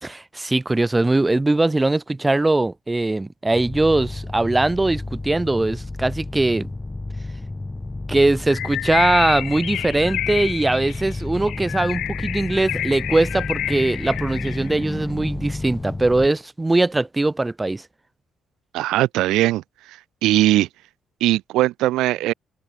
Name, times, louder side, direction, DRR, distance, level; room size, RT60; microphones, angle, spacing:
voice 1, 0.0-6.7 8.1-17.8, right 2 dB, 15° right, 1.3 m, -21 dB
sound 1, 3.5-16.3, left 2 dB, 20° left, 3.4 m, -31 dB
Bird, 8.5-14.8, left 13 dB, 80° left, 6.2 m, -29 dB
voice 2, 18.7-20.7 21.2-22.3, right 16 dB, 90° right, 0.9 m, -20 dB
open air
cardioid pair, 85°, 0 cm